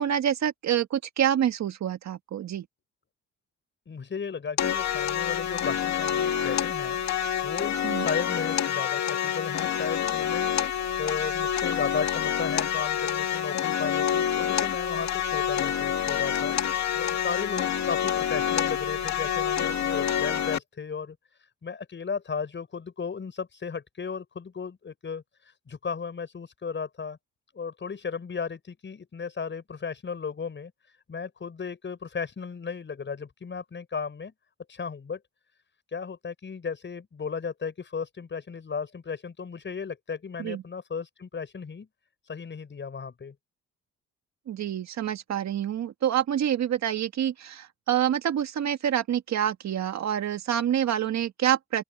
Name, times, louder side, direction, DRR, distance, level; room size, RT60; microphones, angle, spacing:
voice 1, 0.0-2.7 7.8-8.1 40.4-40.6 44.5-51.8, right 10 dB, 65° right, 1.8 m, -27 dB
voice 2, 3.9-7.0 7.4-10.5 11.0-21.2 21.6-25.2 25.7-27.2 27.5-30.7 31.1-34.3 34.7-35.2 35.9-41.9 42.3-43.4, left 5 dB, 40° left, 5.9 m, -35 dB
sound 1, 4.6-20.6, left 9 dB, 65° left, 2.2 m, -27 dB
open air
cardioid pair, 90°, 30 cm